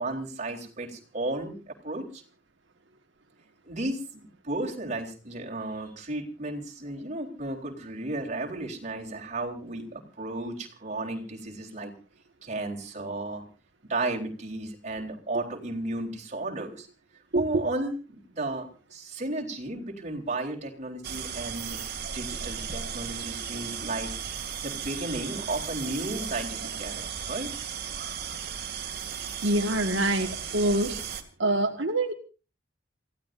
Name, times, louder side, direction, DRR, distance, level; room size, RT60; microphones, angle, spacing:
voice 1, 0.0-2.2 3.7-11.9 12.4-13.4 13.9-16.9 17.3-21.8 22.1-24.1 24.6-27.5, right 2 dB, 40° right, 0 dB, 3.8 m, -34 dB
sound 1, 21.0-31.2, right 7 dB, 60° right, 2.5 m, -35 dB
voice 2, 29.4-31.0 31.4-32.1, right 1 dB, 75° right, 3 dB, 1.7 m, -25 dB
28.0 x 16.0 x 2.6 m, 0.34 s
head